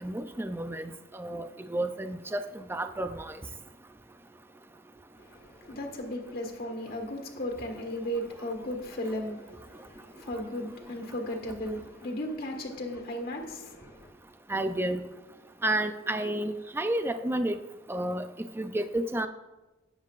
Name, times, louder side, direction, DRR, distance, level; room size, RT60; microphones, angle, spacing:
voice 1, 0.0-3.4 14.5-15.0 15.6-17.6 17.9-18.3 18.6-19.3, right 1 dB, 10° right, 0.4 m, -31 dB
voice 2, 5.2-14.1, left 1 dB, 45° left, 1.6 m, -36 dB
17.5 x 7.4 x 2.4 m
head